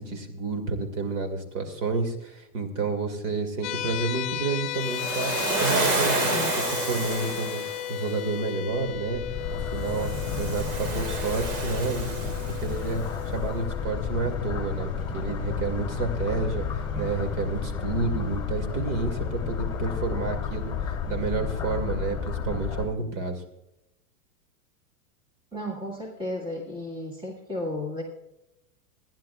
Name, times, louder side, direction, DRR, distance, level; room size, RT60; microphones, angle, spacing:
voice 1, 0.0-5.3 5.6-7.6 7.9-9.2 9.5-23.4, right 3 dB, 50° right, 6 dB, 2.3 m, -30 dB
sound 1, 3.6-14.8, left 13 dB, 50° left, 0.5 m, -35 dB
Waves surf, 4.8-8.0 9.8-12.9, right 2 dB, 80° right, 4.5 m, -29 dB
sound 2, 8.9-22.9, left 6 dB, 10° left, 2.7 m, -32 dB
voice 2, 25.5-28.0, left 1 dB, 10° right, -1 dB, 1.8 m, -33 dB
27.0 x 10.5 x 2.4 m, 0.89 s
supercardioid pair, 165°, 47 cm